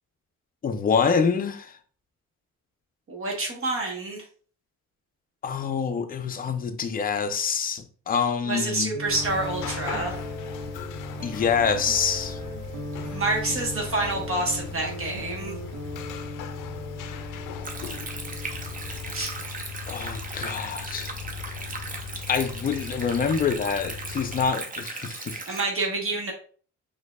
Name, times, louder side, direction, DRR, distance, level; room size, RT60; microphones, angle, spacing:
voice 1, 0.6-1.7 5.4-9.0 11.2-12.4 19.8-21.1 22.3-25.6, left 6 dB, 30° left, 0.4 m, -26 dB
voice 2, 3.1-4.2 8.5-10.1 13.1-15.6 19.1-19.3 25.5-26.3, right 2 dB, 45° right, 1.0 m, -28 dB
sound 1, 8.9-19.5, right 1 dB, 80° right, 0.8 m, -38 dB
sound 2, 9.1-24.5, left 6 dB, 90° left, 0.5 m, -38 dB
Stream, 17.6-25.6, right 3 dB, 30° right, 0.7 m, -37 dB
4.4 x 2.7 x 2.2 m
cardioid pair, 90°, 30 cm